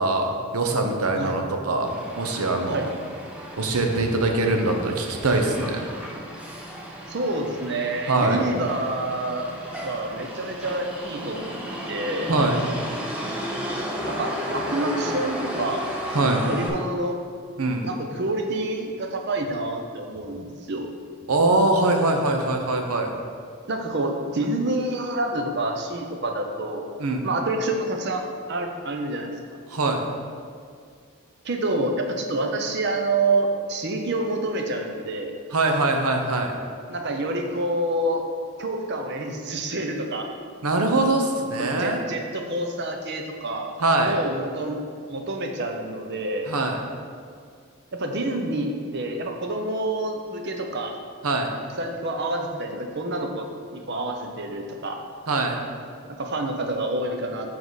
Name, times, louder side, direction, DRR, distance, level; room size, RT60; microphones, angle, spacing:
voice 1, 0.0-1.9 2.2-2.9 3.6-5.8 8.1-8.5 12.3-12.6 16.1-16.5 17.6-17.9 21.3-23.2 27.0-27.3 29.7-30.1 35.5-36.6 40.6-42.0 43.8-44.2 46.5-46.8 51.2-51.5 55.3-55.6, right 2 dB, 85° right, 3 dB, 0.8 m, -23 dB
Motor vehicle (road), 1.9-16.7, equal, 5° right, 0.6 m, -34 dB
voice 2, 7.1-9.5 9.8-12.3 14.0-15.8 16.2-17.2 17.8-20.9 23.7-26.9 27.2-29.3 31.4-35.3 36.9-38.2 38.6-40.3 41.6-43.8 44.0-44.8 45.1-46.5 47.9-51.0 51.8-55.0 56.0-57.5, right 2 dB, 50° right, 3 dB, 0.7 m, -28 dB
7.3 x 4.7 x 4.0 m, 2.1 s
head